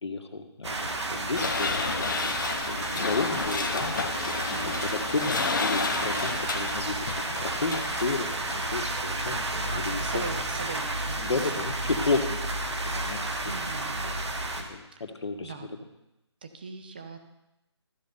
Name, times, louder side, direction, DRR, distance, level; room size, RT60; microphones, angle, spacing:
voice 1, 0.0-1.7 2.0-2.4 2.7-4.0 4.8-10.3 11.2-12.6 12.8-13.3 13.9-14.2 14.5-15.5, left 3 dB, 70° left, 5 dB, 1.5 m, -32 dB
sound 1, 0.6-14.6, right 2 dB, 70° right, 1.6 m, -32 dB
sound 2, 1.4-8.7, left 4 dB, 45° left, 0.8 m, -31 dB
voice 2, 4.5-4.8 9.4-11.6 13.5-14.0 14.9-15.0 15.4-15.7 16.4-17.3, right 4 dB, 20° right, 7 dB, 0.6 m, -40 dB
14.0 x 4.7 x 5.5 m, 0.92 s
hypercardioid pair, 175°, 15 cm